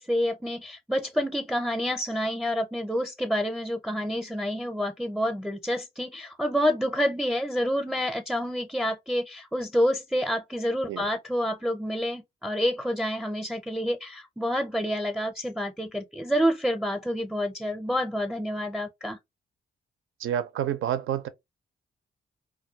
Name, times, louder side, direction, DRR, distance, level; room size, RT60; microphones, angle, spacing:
voice 1, 0.0-19.2, equal, 5° right, 0.5 m, -28 dB
voice 2, 20.2-21.3, right 10 dB, 70° right, 0.5 m, -28 dB
2.3 x 2.2 x 2.7 m
supercardioid pair, 50°, 21 cm